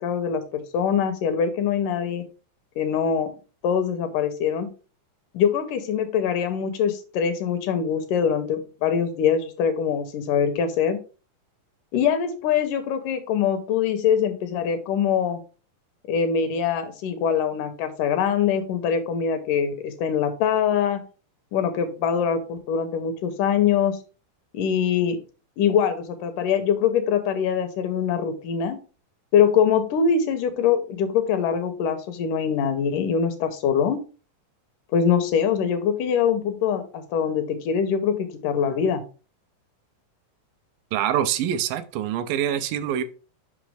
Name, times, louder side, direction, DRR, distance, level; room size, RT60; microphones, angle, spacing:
voice 1, 0.0-2.2 2.8-3.3 3.6-4.7 5.3-11.0 11.9-15.4 16.1-21.0 21.5-24.0 24.5-25.2 25.6-28.8 29.3-34.0 34.9-39.0, left 7 dB, 75° left, 2.2 m, -23 dB
voice 2, 40.9-43.0, right 10 dB, 80° right, 2.2 m, -25 dB
6.1 x 5.4 x 3.4 m
omnidirectional pair, 4.0 m